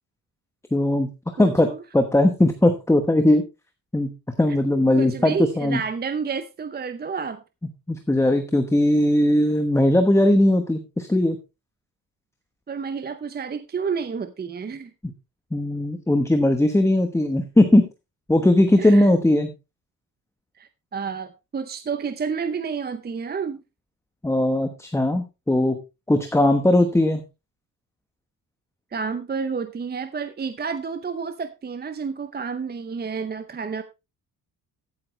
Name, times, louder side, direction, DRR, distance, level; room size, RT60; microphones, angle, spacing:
voice 1, 0.7-1.1 1.4-3.4 3.9-4.1 4.4-5.8 7.9-11.4 15.5-17.9 18.3-19.5 24.2-25.8 26.1-27.2, left 1 dB, 10° left, 7 dB, 1.1 m, -19 dB
voice 2, 1.4-1.8 4.9-7.4 12.7-14.9 18.8-19.1 20.6-23.6 28.9-33.8, right 5 dB, 25° right, 10 dB, 0.7 m, -30 dB
14.5 x 8.6 x 3.2 m, 0.26 s
cardioid pair, 135°, 36 cm